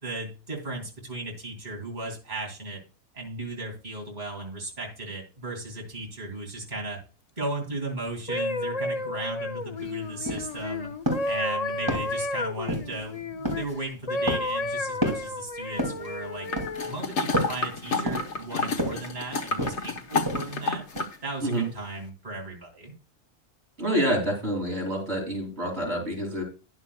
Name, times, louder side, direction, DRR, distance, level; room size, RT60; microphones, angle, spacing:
voice 1, 0.0-2.8 3.1-7.0 7.4-10.9 11.2-16.5 16.8-20.8 21.2-22.9, right 2 dB, 40° right, 0 dB, 3.0 m, -36 dB
sound 1, 8.1-13.6 14.1-16.9 17.6-17.9, left 2 dB, 40° left, 0.6 m, -32 dB
sound 2, 9.8-9.9 10.2-10.6 11.1-11.4 11.9-12.2 12.7-13.0 13.4-13.8 14.3-14.6 15.0-15.3 15.8-16.1 16.6-16.9 17.3-17.6 18.1-18.4 18.8-19.1 19.6-19.9 20.3-20.6 21.0-21.1, equal, 20° right, 2.7 m, -30 dB
sound 3, 16.5-21.2 21.5-21.6, left 3 dB, 75° left, 1.5 m, -30 dB
voice 2, 23.8-26.4, right 1 dB, 65° right, 0 dB, 3.0 m, -27 dB
12.5 x 10.5 x 2.3 m, 0.33 s
omnidirectional pair, 1.2 m